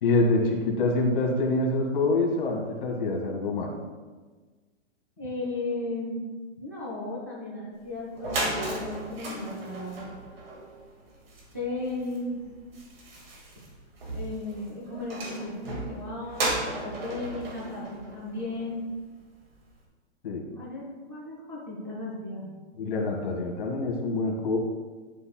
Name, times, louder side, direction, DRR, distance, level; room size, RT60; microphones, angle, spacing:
voice 1, 0.0-3.7 20.2-20.4 22.8-24.6, left 2 dB, 45° left, -1 dB, 1.7 m, -26 dB
voice 2, 5.2-10.1 11.5-12.4 14.1-18.9 20.5-22.5, left 2 dB, 15° right, -6 dB, 0.4 m, -35 dB
sound 1, 7.8-7.9 8.1-18.9, right 2 dB, 50° right, 2.1 m, -35 dB
11.0 x 5.9 x 2.3 m, 1.4 s
hypercardioid pair, 180°, 37 cm